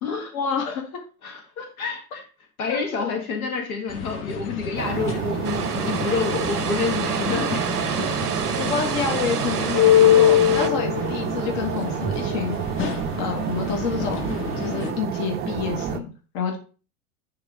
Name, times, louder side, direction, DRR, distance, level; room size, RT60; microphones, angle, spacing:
voice 1, 0.3-1.0 2.7-3.1 8.6-12.6 13.2-14.3 14.6-16.1 16.3-16.6, left 6 dB, 45° left, 3 dB, 1.8 m, -28 dB
voice 2, 1.2-2.2 2.6-7.6 8.0-8.1, left 5 dB, 65° left, 3 dB, 1.7 m, -28 dB
sound 1, 3.9-14.9, left 11 dB, 25° left, 1.0 m, -25 dB
sound 2, 4.8-16.0, right 9 dB, 20° right, 0.5 m, -29 dB
sound 3, 5.4-10.7, right 6 dB, 90° right, 0.8 m, -29 dB
9.5 x 3.4 x 3.7 m, 0.37 s
figure-of-eight pair, 85°, 45 cm